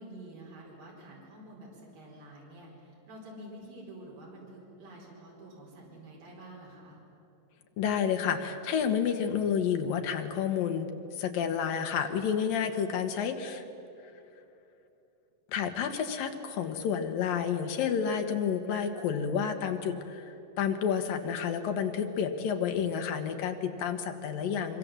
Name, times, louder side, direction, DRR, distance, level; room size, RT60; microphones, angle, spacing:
voice 1, 0.0-7.0, right 1 dB, 90° right, -4 dB, 6.5 m, -48 dB
voice 2, 7.8-10.9 11.2-13.6 15.5-24.8, left 7 dB, 85° left, 6 dB, 3.2 m, -30 dB
25.5 x 25.0 x 7.8 m, 2.8 s
omnidirectional pair, 3.9 m